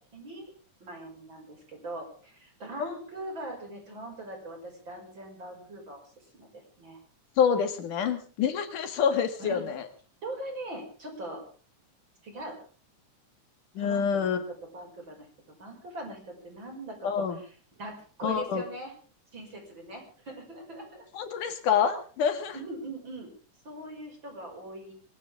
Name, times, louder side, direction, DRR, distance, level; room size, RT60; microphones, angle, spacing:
voice 1, 0.1-0.5 0.8-6.0 6.3-7.0 9.4-9.7 10.2-11.4 12.2-12.6 13.8-18.9 19.3-21.0 22.5-23.3 23.6-24.9, right 1 dB, 35° right, 3 dB, 6.5 m, -41 dB
voice 2, 7.4-9.8 13.8-14.4 17.0-17.4 18.2-18.6 21.1-22.6, left 7 dB, 80° left, 8 dB, 3.6 m, -27 dB
23.0 x 17.0 x 3.6 m, 0.41 s
omnidirectional pair, 3.6 m